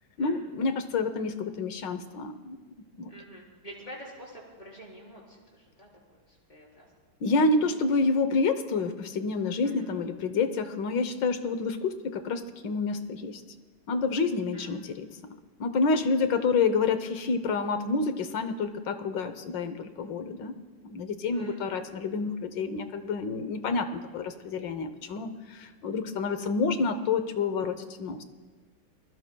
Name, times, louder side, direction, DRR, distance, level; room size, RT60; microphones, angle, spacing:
voice 1, 0.2-2.6 3.0-3.1 7.2-13.4 13.9-15.1 15.6-20.5 20.8-28.2, left 4 dB, 65° left, 9 dB, 1.5 m, -28 dB
voice 2, 3.1-6.9 9.6-9.8 14.5-14.8 17.0-17.2 21.3-21.8, equal, 20° left, -3 dB, 4.5 m, -47 dB
28.0 x 21.5 x 2.3 m, 1.5 s
omnidirectional pair, 2.3 m